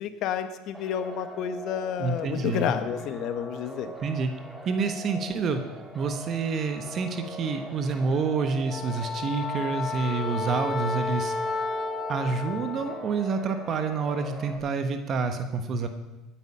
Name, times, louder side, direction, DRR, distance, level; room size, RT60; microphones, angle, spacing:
voice 1, 0.0-3.9, left 9 dB, 60° left, 10 dB, 1.3 m, -30 dB
sound 1, 0.7-14.6, right 1 dB, 5° right, 2.2 m, -42 dB
voice 2, 2.0-2.7 4.0-4.3 4.6-5.6 5.9-11.3 12.1-15.9, right 4 dB, 45° right, 7 dB, 1.2 m, -28 dB
Wind instrument woodwind instrument, 8.7-13.1, left 4 dB, 35° left, 1.3 m, -32 dB
16.5 x 9.1 x 5.7 m, 1.1 s
supercardioid pair, 100°, 0 cm